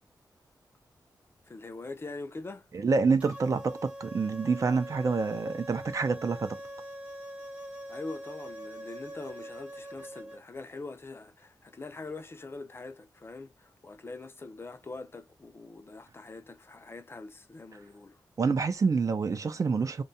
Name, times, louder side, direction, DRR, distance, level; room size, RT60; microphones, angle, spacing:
voice 1, 1.5-2.7 7.9-18.2, left 3 dB, 35° left, 0.4 m, -43 dB
voice 2, 2.8-6.6 18.4-20.0, right 4 dB, 50° right, 0.4 m, -27 dB
sound 1, 3.2-10.4, right 1 dB, 15° right, 0.7 m, -43 dB
2.7 x 2.3 x 2.5 m
wide cardioid pair, 110°, 7 cm